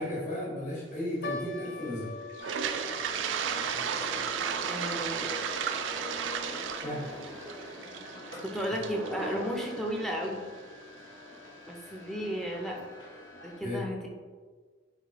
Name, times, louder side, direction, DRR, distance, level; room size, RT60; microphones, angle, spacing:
voice 1, 0.0-2.1 6.8-7.1 8.5-8.6 13.6-13.8, left 1 dB, 40° left, -6 dB, 1.1 m, -34 dB
sound 1, 1.2-7.7 8.0-8.1 8.8-9.1 9.7-9.8 10.2-10.3, left 3 dB, 55° left, 0.4 m, -45 dB
Toilet flush, 2.3-10.3, right 8 dB, 80° right, 0.3 m, -34 dB
sound 2, 2.4-13.6, left 1 dB, 85° left, 0.9 m, -42 dB
voice 2, 4.7-5.3 8.4-10.4 11.7-12.8 13.4-14.0, equal, ahead, 0 dB, 0.5 m, -34 dB
4.1 x 3.2 x 3.9 m, 1.5 s
head